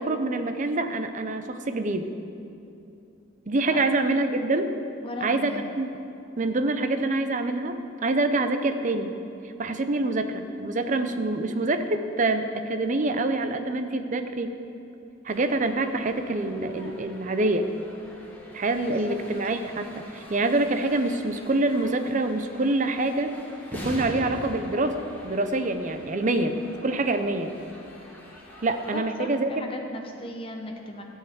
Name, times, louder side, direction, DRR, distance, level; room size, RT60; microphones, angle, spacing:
voice 1, 0.0-2.1 3.5-4.7 5.2-5.9 6.4-9.1 9.6-14.5 15.2-17.7 18.5-23.4 23.7-27.6 28.6-29.6, right 2 dB, 40° right, 8 dB, 0.6 m, -26 dB
voice 2, 5.0-5.7 18.9-19.2 28.9-31.0, left 1 dB, 25° left, 2 dB, 0.7 m, -37 dB
sound 1, 15.3-29.0, equal, 10° left, 1.4 m, -44 dB
13.5 x 4.6 x 8.0 m, 2.7 s
head